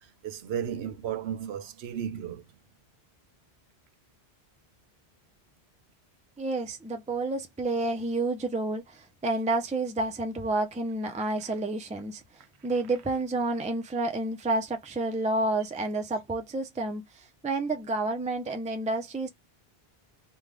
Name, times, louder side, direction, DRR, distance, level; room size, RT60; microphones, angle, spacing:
voice 1, 0.2-2.4, right 9 dB, 85° right, 0.9 m, -34 dB
voice 2, 6.4-12.2 12.6-19.3, right 2 dB, 10° right, 0.3 m, -30 dB
3.6 x 2.2 x 3.3 m
omnidirectional pair, 1.1 m